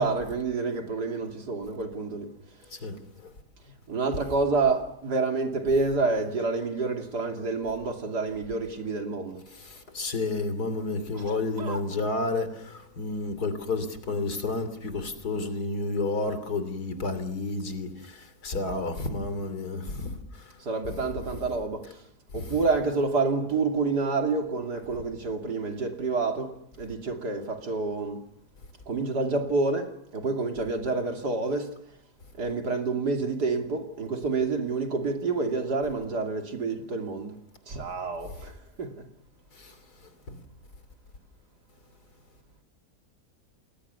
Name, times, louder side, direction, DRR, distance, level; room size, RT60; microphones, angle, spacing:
voice 1, 0.0-2.3 3.9-9.4 11.1-11.8 20.6-21.9 22.3-28.2 28.9-31.7 32.4-37.3 37.7-39.0, right 3 dB, 85° right, 3.3 m, -28 dB
voice 2, 9.5-20.2 20.8-20.9 39.6-39.7 40.3-40.4, left 3 dB, 75° left, 3.5 m, -31 dB
29.5 x 20.5 x 6.9 m
omnidirectional pair, 1.7 m